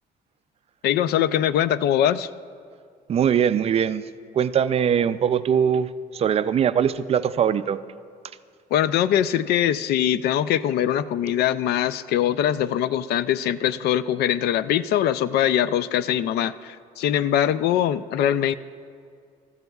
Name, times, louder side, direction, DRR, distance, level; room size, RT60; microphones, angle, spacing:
voice 1, 0.8-2.3 8.7-18.5, left 10 dB, 70° left, 15 dB, 0.4 m, -22 dB
voice 2, 3.1-4.0 4.3-7.8, right 8 dB, 35° right, 13 dB, 0.4 m, -21 dB
16.0 x 13.5 x 2.3 m, 2.2 s
cardioid pair, 110°, 17 cm